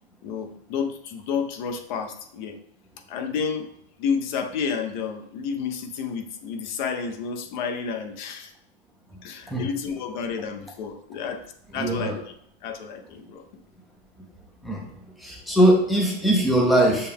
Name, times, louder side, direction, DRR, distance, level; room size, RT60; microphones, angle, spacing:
voice 1, 0.2-2.6 3.1-3.7 4.0-8.5 9.2-11.4 11.7-12.2 12.6-13.4, left 6 dB, 50° left, 6 dB, 0.7 m, -30 dB
voice 2, 11.7-12.1 14.6-14.8 15.2-17.1, right 1 dB, ahead, 0 dB, 0.4 m, -20 dB
6.5 x 2.2 x 3.5 m, 0.70 s
supercardioid pair, 150°, 31 cm